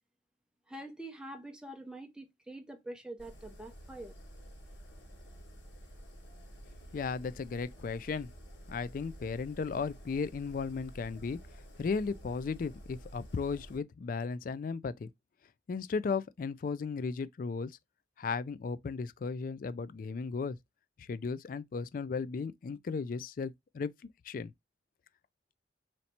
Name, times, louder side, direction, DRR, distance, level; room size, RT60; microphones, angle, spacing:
voice 1, 0.7-4.1, right 1 dB, 5° right, 0.6 m, -45 dB
sound 1, 3.2-13.8, equal, 80° left, 2.0 m, -51 dB
voice 2, 6.9-8.3 8.7-11.4 11.8-15.1 15.7-17.7 18.2-20.6 21.0-23.9 24.2-24.5, left 5 dB, 50° left, 0.3 m, -35 dB
3.1 x 2.8 x 4.1 m
head